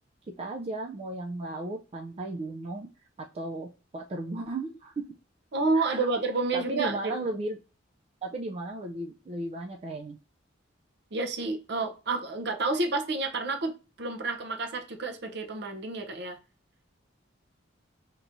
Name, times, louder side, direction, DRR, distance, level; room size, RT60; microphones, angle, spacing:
voice 1, 0.4-2.9 3.2-3.7 3.9-5.0 5.7-6.1 6.5-7.6 8.2-10.2, right 2 dB, 35° right, 0.4 m, -35 dB
voice 2, 5.5-7.2 11.1-16.4, right 3 dB, 60° right, 0.7 m, -29 dB
4.7 x 2.9 x 2.6 m
head